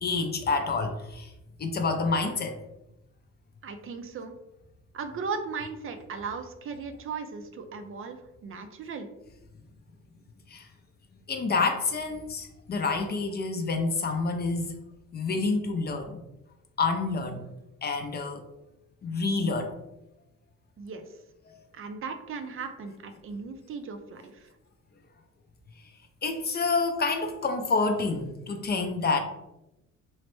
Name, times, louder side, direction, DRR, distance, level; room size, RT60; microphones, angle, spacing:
voice 1, 0.0-1.3 1.6-2.6 10.5-10.7 11.3-14.7 15.1-16.2 16.8-17.4 17.8-18.4 19.0-19.8 26.2-29.2, left 4 dB, 35° left, 5 dB, 0.4 m, -28 dB
voice 2, 3.6-4.3 4.9-9.1 20.8-21.1 21.7-24.5, right 5 dB, 45° right, 7 dB, 0.4 m, -37 dB
3.0 x 2.1 x 3.0 m, 0.90 s
cardioid pair, 90°, 30 cm